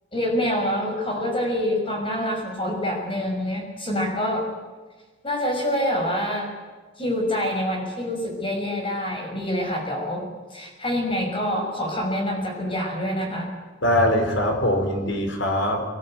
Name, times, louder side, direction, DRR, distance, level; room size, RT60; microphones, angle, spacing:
voice 1, 0.1-4.5 5.2-6.5 7.0-10.2 10.5-13.5, equal, 25° left, 1 dB, 6.4 m, -26 dB
voice 2, 13.8-15.8, left 1 dB, 70° left, 4 dB, 4.9 m, -22 dB
22.0 x 19.5 x 9.0 m, 1.4 s
head